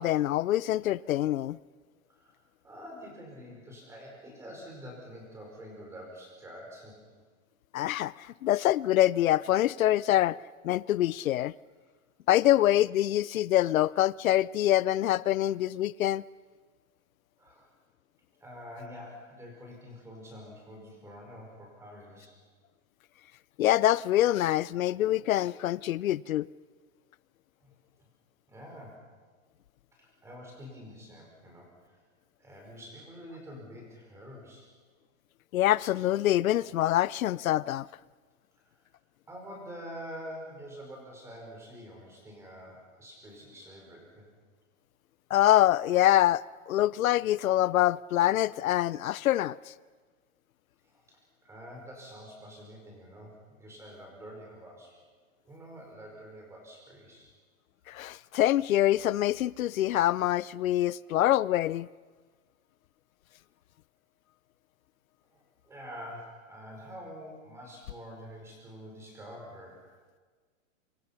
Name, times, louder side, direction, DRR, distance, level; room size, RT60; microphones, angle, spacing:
voice 1, 0.0-1.6 7.7-10.4 10.6-11.5 12.3-16.2 23.6-26.5 35.5-37.9 45.3-49.6 57.9-61.9, left 13 dB, 90° left, 0.6 m, -25 dB
voice 2, 2.6-7.0 17.4-17.7 18.4-22.3 27.6-27.7 28.5-29.0 30.0-32.0 32.4-34.7 38.6-38.7 39.3-44.3 50.8-55.0 55.4-57.3 65.3-69.8, equal, 5° right, 5.0 m, -46 dB
26.0 x 23.5 x 5.8 m
hypercardioid pair, 170°, 40 cm